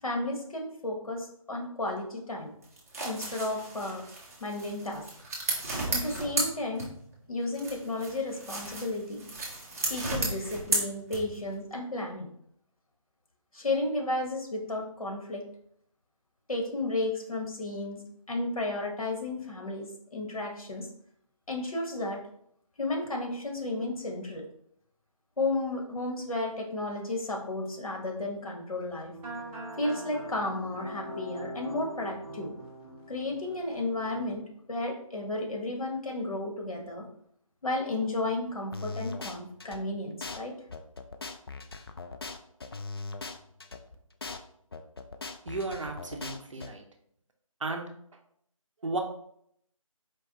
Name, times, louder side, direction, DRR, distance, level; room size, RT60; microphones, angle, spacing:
voice 1, 0.0-2.5 3.0-4.0 4.4-5.0 5.9-6.9 7.3-9.2 9.9-12.3 13.5-15.4 16.5-18.0 18.3-20.9 21.5-22.2 22.8-24.4 25.4-29.1 29.8-32.5 33.1-37.1 37.6-40.5, left 2 dB, 80° left, 1 dB, 1.4 m, -33 dB
sound 1, 2.6-7.2 7.5-11.5, right 2 dB, 25° right, 0.9 m, -34 dB
sound 2, 29.1-34.4, right 1 dB, 10° right, 1.3 m, -42 dB
sound 3, 38.7-39.8 40.2-40.4 40.7-43.8 44.2-44.4 44.7-46.7, left 3 dB, 45° left, 0.4 m, -39 dB
voice 2, 45.5-46.8 47.6-47.9 48.8-49.0, right 3 dB, 60° right, 4 dB, 0.7 m, -34 dB
4.6 x 3.1 x 2.9 m, 0.69 s
figure-of-eight pair, 165°, 18 cm